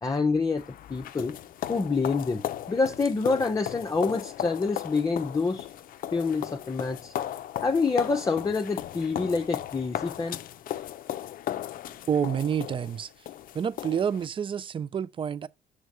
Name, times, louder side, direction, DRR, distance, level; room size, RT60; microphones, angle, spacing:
voice 1, 0.0-0.6 0.9-1.4 1.7-5.7 6.1-7.1 7.6-10.4, left 4 dB, 20° left, 0.6 m, -27 dB
sound 1, 0.6-14.3, left 11 dB, 55° left, 0.5 m, -36 dB
voice 2, 12.1-13.1 13.5-15.5, right 8 dB, 30° right, 0.4 m, -28 dB
6.3 x 3.5 x 5.3 m
cardioid pair, 110°, 17 cm